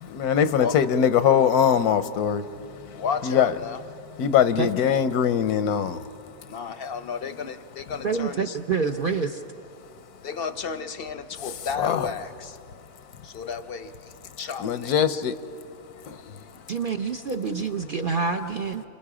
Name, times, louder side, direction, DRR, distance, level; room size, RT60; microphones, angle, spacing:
voice 1, 0.0-2.4 3.2-3.5 4.2-6.0 11.8-12.1 14.6-15.3 16.1-16.3, left 8 dB, 85° left, 1.2 m, -22 dB
voice 2, 2.9-3.8 6.5-8.6 10.2-12.6 13.2-15.3, left 6 dB, 55° left, 0.7 m, -33 dB
voice 3, 8.0-9.4 16.7-18.8, right 5 dB, 55° right, 0.6 m, -27 dB
28.5 x 25.0 x 4.9 m
omnidirectional pair, 1.6 m